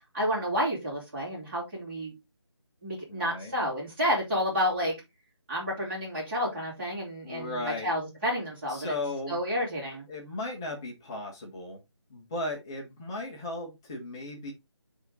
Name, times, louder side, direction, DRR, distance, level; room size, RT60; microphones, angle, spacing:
voice 1, 0.1-2.1 2.8-4.9 5.5-8.9 9.3-10.0, equal, 25° right, -8 dB, 3.1 m, -30 dB
voice 2, 3.1-3.6 7.2-7.9 8.7-9.4 10.1-11.8 12.1-14.5, left 2 dB, 10° left, -2 dB, 0.7 m, -36 dB
8.7 x 3.6 x 3.9 m, 0.22 s
figure-of-eight pair, 170°, 15 cm